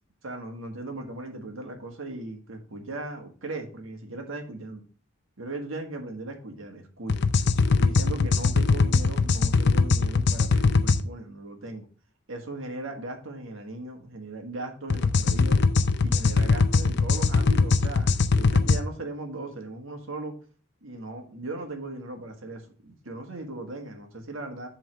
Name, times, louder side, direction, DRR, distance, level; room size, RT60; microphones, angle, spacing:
voice 1, 0.2-4.8 5.4-7.2 7.8-11.9 12.3-15.6 16.0-20.3 20.8-24.7, right 2 dB, 75° right, 4 dB, 1.6 m, -38 dB
sound 1, 7.1-11.0 14.9-18.8, left 4 dB, 55° left, 0.5 m, -21 dB
7.7 x 3.8 x 6.1 m, 0.40 s
head